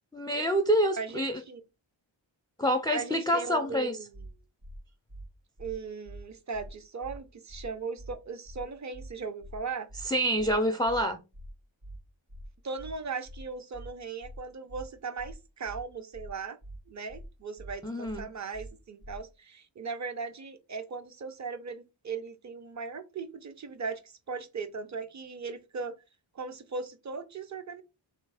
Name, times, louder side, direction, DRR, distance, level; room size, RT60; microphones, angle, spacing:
voice 1, 0.1-1.4 2.6-4.0 10.0-11.2 17.8-18.3, equal, 10° left, 0.4 m, -27 dB
voice 2, 1.0-1.6 2.9-4.3 5.6-9.9 12.6-16.6 16.9-26.0 26.3-27.8, right 5 dB, 35° right, 0.7 m, -38 dB
sound 1, 4.1-4.3 4.6-4.8 5.1-5.3 5.6-5.7 6.1-6.2 6.5-6.7 7.0-7.2 7.5-7.7 8.0-8.1 8.5-8.6 8.9-9.1 9.4-9.6 9.9-10.1 10.4-10.5 10.9-11.0 11.3-11.5 11.8-12.0 12.3-12.5 12.8-12.9 13.3-13.4 13.7-13.9 14.2-14.4 14.7-14.9 15.2-15.3 15.7-15.8 16.1-16.3 16.6-16.8 17.1-17.3 17.6-17.7 18.1-18.2 18.5-18.7 19.0-19.2, right 1 dB, 55° right, 1.6 m, -45 dB
3.3 x 3.2 x 4.8 m
wide cardioid pair, 90°, 48 cm